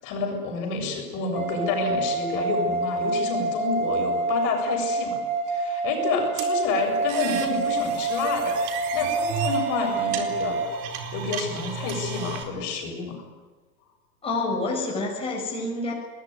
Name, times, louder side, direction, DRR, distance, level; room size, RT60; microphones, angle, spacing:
voice 1, 0.0-5.2 5.5-10.6 11.1-13.2, left 5 dB, 40° left, 3 dB, 7.5 m, -29 dB
sound 1, 1.3-10.7, right 3 dB, 15° right, 4.1 m, -27 dB
sound 2, 6.4-12.4, right 7 dB, 40° right, 4.2 m, -34 dB
voice 2, 14.2-15.9, left 2 dB, 10° left, -2 dB, 6.4 m, -28 dB
24.0 x 20.5 x 9.7 m, 1.3 s
hypercardioid pair, 125°, 48 cm